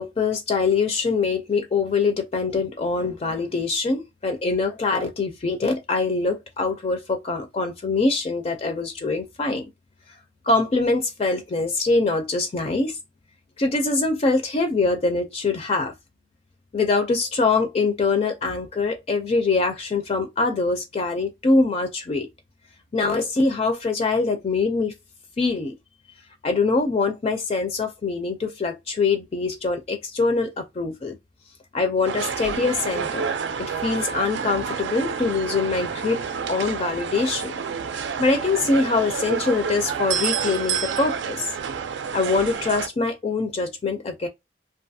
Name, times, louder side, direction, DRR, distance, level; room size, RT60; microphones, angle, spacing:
voice 1, 0.0-9.6 10.4-13.0 13.6-15.9 16.7-22.3 22.9-24.9 25.4-25.7 26.4-31.2 31.7-33.3 33.6-36.2 36.5-37.5 38.2-41.5 42.1-44.3, left 3 dB, 35° left, 0.4 m, -23 dB
sound 1, 32.0-42.9, right 6 dB, 80° right, 0.4 m, -29 dB
2.6 x 2.3 x 2.6 m
head